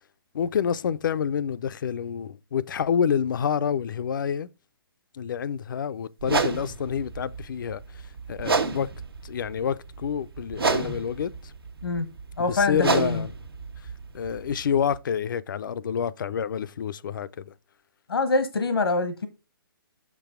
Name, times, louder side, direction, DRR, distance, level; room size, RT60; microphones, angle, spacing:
voice 1, 0.3-4.5 5.1-7.8 8.3-8.9 9.2-11.5 12.5-13.3 14.1-17.5, left 7 dB, 60° left, 0.5 m, -28 dB
sound 1, 6.2-15.0, right 4 dB, 85° right, 1.4 m, -31 dB
voice 2, 12.4-13.2 18.1-19.3, left 3 dB, 85° left, 1.0 m, -25 dB
6.4 x 6.0 x 3.6 m
hypercardioid pair, 145°, 12 cm